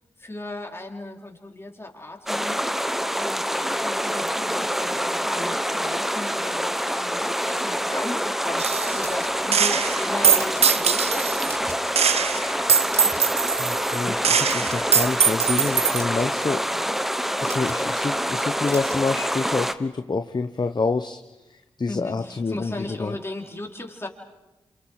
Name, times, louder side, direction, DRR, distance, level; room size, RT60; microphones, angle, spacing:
voice 1, 0.2-2.8 3.2-11.9 21.9-24.1, left 2 dB, 20° left, 0 dB, 4.7 m, -36 dB
sound 1, 2.3-19.7, equal, ahead, 1.2 m, -26 dB
Gunshot gunfire, 8.6-9.1 9.5-11.5 12.0-16.0, right 7 dB, 65° right, 0.8 m, -22 dB
sound 2, 8.9-9.7 10.2-10.7 11.2-11.9 12.2-12.4 12.7-13.5 14.4-15.0 15.7-16.3 17.4-17.8 18.6-19.1, right 2 dB, 25° right, 1.9 m, -40 dB
voice 2, 13.6-16.6 17.5-21.2 21.8-23.2, left 4 dB, 40° left, 7 dB, 1.1 m, -27 dB
29.5 x 27.0 x 4.9 m, 1.0 s
supercardioid pair, 40°, 11 cm